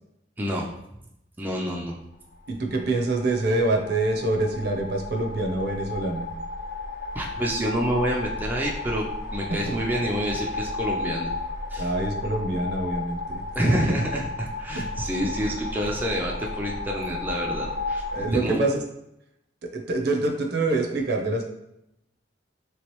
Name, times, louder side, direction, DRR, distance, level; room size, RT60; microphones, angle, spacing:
voice 1, 0.4-0.7 1.4-2.0 7.1-9.1 9.3-11.3 11.7-11.9 13.6-18.6, equal, 10° right, -2 dB, 0.3 m, -28 dB
sound 1, 2.3-18.3, left 3 dB, 50° left, 0.8 m, -33 dB
voice 2, 2.5-6.2 11.8-13.4 13.7-13.8 15.2-15.3 18.1-18.8 19.7-21.4, right 2 dB, 60° right, 2 dB, 0.6 m, -25 dB
3.2 x 3.1 x 3.0 m, 0.82 s
head